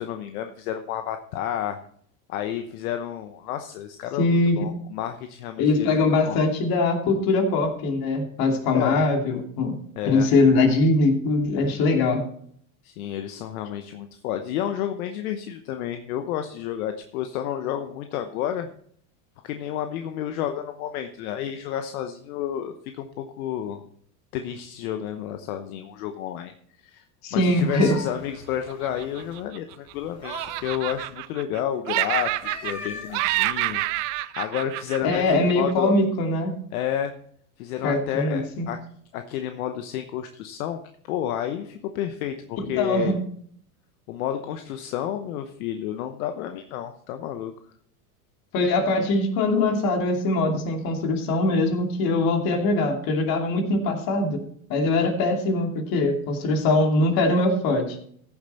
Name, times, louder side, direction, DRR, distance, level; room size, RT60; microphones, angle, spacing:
voice 1, 0.0-1.8 2.3-5.9 6.2-6.4 8.7-9.0 10.0-10.3 12.8-18.7 19.4-23.8 24.3-26.5 26.8-27.0 27.3-33.8 34.1-35.9 36.7-37.1 37.6-38.8 39.1-40.8 41.1-43.2 44.1-47.5, left 10 dB, 75° left, 7 dB, 1.0 m, -30 dB
voice 2, 4.2-4.6 5.6-9.8 10.0-12.2 27.2-27.9 35.0-36.5 37.8-38.7 42.7-43.2 48.5-54.4 54.7-58.0, left 2 dB, 50° left, 3 dB, 2.7 m, -22 dB
sound 1, 27.4-29.4 29.9-31.1 32.2-34.1, left 3 dB, 35° left, 5.1 m, -41 dB
Laughter, 28.7-29.9 30.2-31.6 31.9-32.9 33.1-35.7, right 19 dB, 55° right, 0.6 m, -28 dB
15.0 x 7.2 x 4.3 m, 0.63 s
hypercardioid pair, 100°, 44 cm